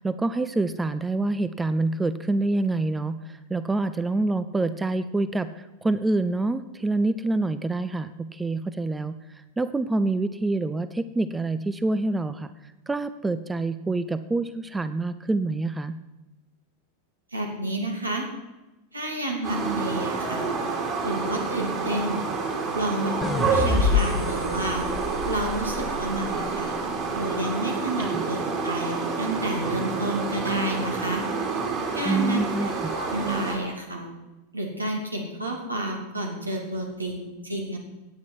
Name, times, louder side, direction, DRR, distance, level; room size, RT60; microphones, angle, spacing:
voice 1, 0.0-9.2 9.6-12.5 12.9-16.0 28.0-28.3 32.1-32.9, right 2 dB, 10° right, 13 dB, 0.5 m, -26 dB
voice 2, 17.3-18.3 18.9-20.5 21.0-22.2 22.7-24.8 25.3-26.7 27.1-31.2 31.9-34.1 34.5-37.8, right 1 dB, 80° right, 1 dB, 2.6 m, -30 dB
sound 1, 19.4-33.6, right 4 dB, 35° right, 3.3 m, -29 dB
sound 2, 23.2-26.5, left 5 dB, 15° left, 1.3 m, -27 dB
17.5 x 8.6 x 4.7 m, 1.1 s
figure-of-eight pair, 90°, 0 cm